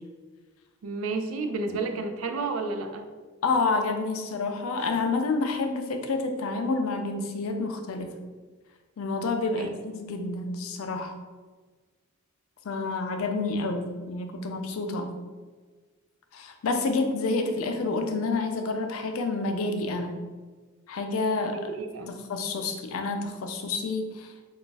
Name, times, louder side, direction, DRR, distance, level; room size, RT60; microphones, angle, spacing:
voice 1, 0.8-3.1 9.5-9.7 21.5-22.2, right 3 dB, 80° right, 6 dB, 0.4 m, -31 dB
voice 2, 3.4-8.1 9.0-11.1 12.6-15.1 16.3-20.1 20.9-21.7 22.1-24.3, left 3 dB, 85° left, 5 dB, 0.4 m, -29 dB
2.3 x 2.3 x 3.9 m, 1.4 s
head